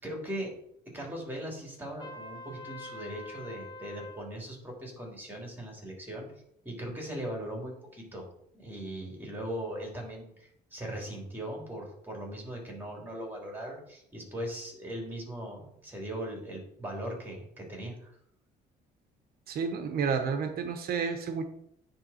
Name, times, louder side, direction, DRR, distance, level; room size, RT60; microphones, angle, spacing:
voice 1, 0.0-0.5 0.9-6.3 6.6-8.3 8.5-18.1, right 1 dB, 10° right, -1 dB, 2.9 m, -39 dB
Trumpet, 2.0-4.2, left 1 dB, 25° left, 1.4 m, -45 dB
voice 2, 19.5-21.4, right 6 dB, 65° right, 7 dB, 1.0 m, -30 dB
9.9 x 3.6 x 4.3 m, 0.72 s
cardioid pair, 110°, 17 cm